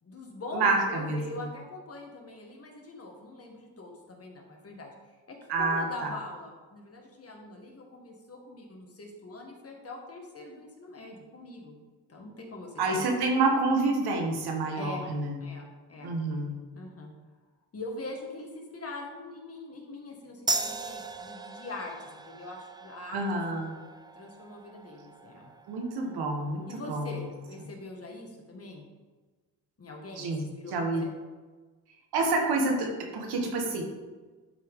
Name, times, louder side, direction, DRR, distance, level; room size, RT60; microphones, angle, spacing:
voice 1, 0.0-11.8 12.1-13.2 14.8-15.0 15.4-16.1 16.7-17.1 17.7-23.2 24.2-25.5 26.7-28.9 29.8-31.1, left 2 dB, 40° left, 1 dB, 1.9 m, -43 dB
voice 2, 0.5-1.5 5.5-6.1 12.8-15.4 16.0-16.6 23.1-23.8 25.7-27.2 30.2-30.4 30.7-31.1 32.1-33.8, right 3 dB, 90° right, 2 dB, 1.6 m, -28 dB
sound 1, 20.5-27.6, right 2 dB, 10° right, 0.6 m, -38 dB
11.5 x 4.7 x 3.8 m, 1.3 s
cardioid pair, 90°, 37 cm